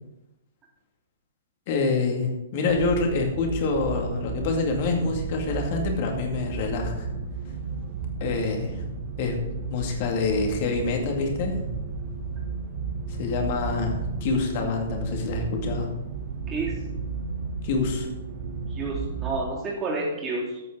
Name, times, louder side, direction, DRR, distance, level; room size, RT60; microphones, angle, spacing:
voice 1, 1.7-7.1 8.2-8.8 9.2-9.4 9.7-11.6 13.1-15.9 17.6-18.1, left 4 dB, 40° left, 2 dB, 2.3 m, -26 dB
sound 1, 2.7-19.4, right 5 dB, 35° right, 1.3 m, -33 dB
voice 2, 18.7-20.6, right 3 dB, 20° right, -4 dB, 3.1 m, -30 dB
14.0 x 8.3 x 3.9 m, 0.97 s
figure-of-eight pair, 115°, 0 cm